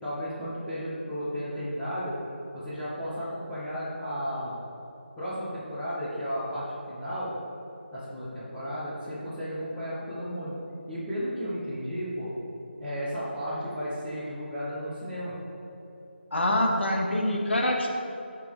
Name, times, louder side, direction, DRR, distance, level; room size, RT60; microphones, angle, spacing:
voice 1, 0.0-2.1 2.5-4.5 5.2-7.3 7.9-10.6 10.9-12.3 12.8-15.3, equal, 5° left, -15 dB, 0.5 m, -34 dB
voice 2, 16.3-17.9, left 1 dB, 65° left, -1 dB, 1.7 m, -25 dB
15.5 x 5.4 x 3.4 m, 2.9 s
figure-of-eight pair, 175°, 6 cm